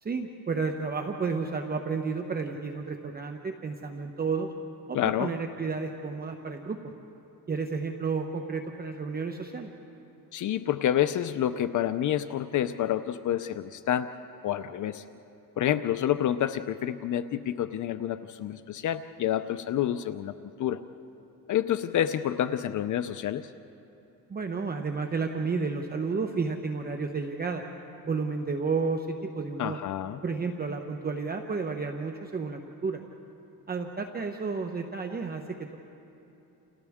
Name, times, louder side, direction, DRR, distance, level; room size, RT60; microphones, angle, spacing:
voice 1, 0.0-4.5 4.9-6.9 7.5-9.7 24.3-27.6 28.0-29.8 30.2-33.0 33.7-35.8, right 4 dB, 25° right, 4 dB, 1.0 m, -31 dB
voice 2, 4.9-5.3 10.3-14.1 14.4-15.0 15.6-20.3 20.6-20.8 21.5-23.5 29.6-30.2, left 11 dB, 55° left, 11 dB, 0.6 m, -28 dB
29.5 x 29.0 x 3.6 m, 2.9 s
cardioid pair, 115°, 35 cm